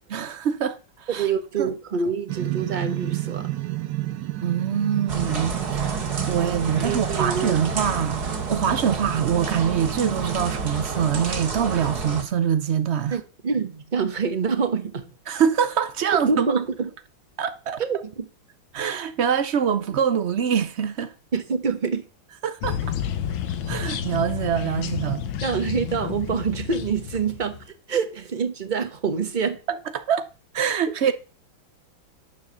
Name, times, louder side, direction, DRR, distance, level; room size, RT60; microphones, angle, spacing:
voice 1, 0.1-1.3 1.6-1.7 4.4-8.2 8.5-13.2 15.3-16.5 17.4-17.8 18.7-21.1 22.4-22.9 23.7-25.2 29.9-30.3 30.5-31.1, right 8 dB, 85° right, 0.5 m, -24 dB
voice 2, 1.2-3.5 6.8-7.6 13.1-15.1 16.1-16.9 17.8-18.3 21.3-22.1 25.4-29.6, right 5 dB, 30° right, 1.0 m, -26 dB
sound 1, 2.3-10.8, right 17 dB, 70° right, 1.2 m, -31 dB
sound 2, 5.1-12.2, right 3 dB, 55° right, 2.5 m, -30 dB
sound 3, 22.6-27.6, left 9 dB, 85° left, 1.8 m, -30 dB
10.0 x 7.1 x 6.7 m
omnidirectional pair, 2.1 m